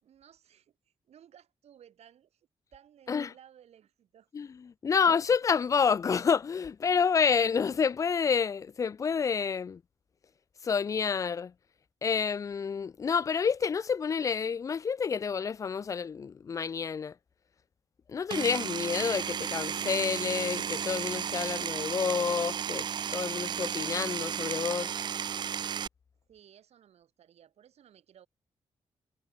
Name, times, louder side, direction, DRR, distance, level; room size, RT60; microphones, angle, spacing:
voice 1, 0.0-4.3 4.9-5.0 26.3-28.3, right 9 dB, 80° right, 6.0 m, -58 dB
voice 2, 4.3-9.8 10.6-11.5 12.0-17.1 18.1-24.9, left 6 dB, 30° left, 0.3 m, -29 dB
Power tool, 18.3-25.9, right 8 dB, 45° right, 0.3 m, -33 dB
wide cardioid pair, 165°, 11 cm